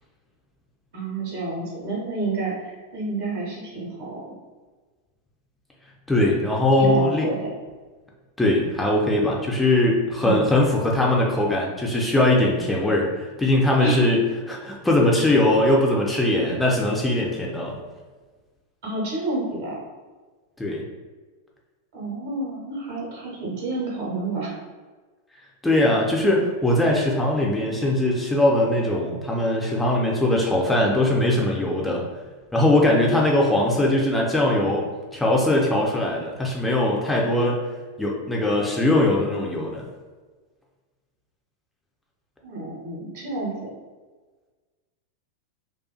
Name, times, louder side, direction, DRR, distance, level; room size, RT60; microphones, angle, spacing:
voice 1, 0.9-4.2 6.8-7.5 10.2-10.5 13.8-14.0 18.8-19.8 21.9-24.6 42.4-43.7, right 3 dB, 55° right, -5 dB, 0.9 m, -29 dB
voice 2, 6.1-7.3 8.4-14.2 14.5-17.8 20.6-20.8 25.6-32.0 32.5-34.9 35.1-37.6 38.0-39.9, left 1 dB, 10° left, -2 dB, 0.3 m, -21 dB
2.5 x 2.3 x 2.2 m, 1.4 s
figure-of-eight pair, 90°, 0 cm